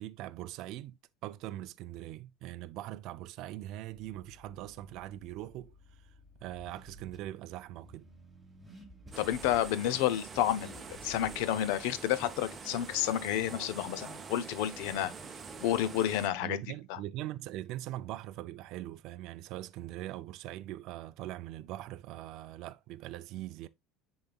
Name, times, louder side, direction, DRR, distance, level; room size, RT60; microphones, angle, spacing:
voice 1, 0.0-5.7 6.4-8.1 16.4-23.7, right 14 dB, 50° right, 0.4 m, -42 dB
Car / Accelerating revving vroom, 3.9-13.1, equal, ahead, 1.2 m, -55 dB
sound 1, 9.1-16.3, right 5 dB, 20° right, 0.7 m, -45 dB
voice 2, 9.2-15.1 15.6-16.6 16.9-17.0, left 12 dB, 70° left, 0.7 m, -30 dB
10.5 x 4.0 x 2.3 m
cardioid pair, 170°, 0 cm